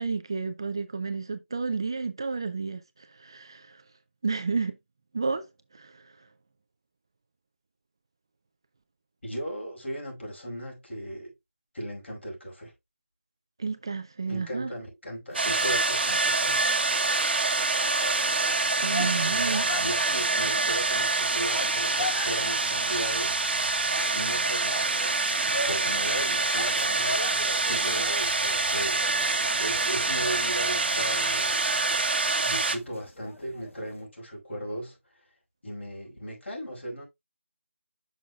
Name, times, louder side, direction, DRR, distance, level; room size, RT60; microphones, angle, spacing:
voice 1, 0.0-3.8 4.2-4.8 5.1-5.5 5.7-6.1 13.6-14.7 18.8-19.7, right 4 dB, 20° right, 0.3 m, -31 dB
voice 2, 9.2-11.3 11.7-12.7 14.3-16.7 19.0-23.4 24.1-25.0 25.3-31.6 32.4-35.0 35.6-37.1, equal, 60° left, 5.2 m, -37 dB
sound 1, 15.3-34.0, left 1 dB, 80° left, 1.8 m, -40 dB
sound 2, 15.3-32.8, right 3 dB, 50° right, 1.0 m, -26 dB
8.4 x 6.2 x 2.3 m
figure-of-eight pair, 170°, 7 cm